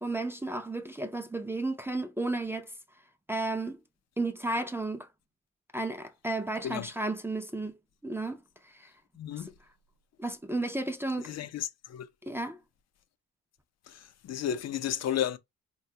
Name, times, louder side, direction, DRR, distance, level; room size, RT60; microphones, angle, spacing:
voice 1, 0.0-2.7 3.3-3.8 4.2-5.1 5.7-7.8 8.0-8.9 9.4-9.5 10.2-11.3 12.2-12.6, right 2 dB, 10° right, 0.4 m, -33 dB
voice 2, 9.2-9.5 11.2-12.1 13.9-15.4, left 10 dB, 60° left, 0.5 m, -33 dB
3.8 x 2.3 x 2.7 m
cardioid pair, 90°, 30 cm